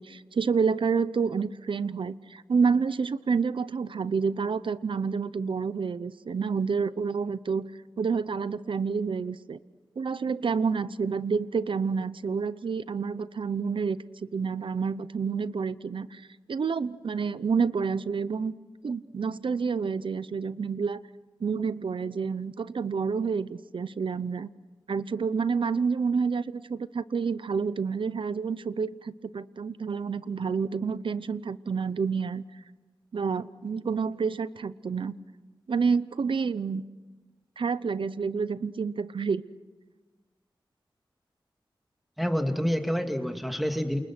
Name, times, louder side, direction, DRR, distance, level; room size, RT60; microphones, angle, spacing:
voice 1, 0.0-7.7 8.0-9.6 10.0-14.0 14.3-18.5 18.8-21.0 21.4-24.5 24.9-32.4 33.1-35.1 35.7-36.8 37.6-39.4, right 5 dB, 75° right, 16 dB, 0.8 m, -29 dB
voice 2, 42.2-44.0, equal, ahead, 5 dB, 2.3 m, -28 dB
28.5 x 28.5 x 6.1 m, 1.2 s
wide cardioid pair, 110°, 9 cm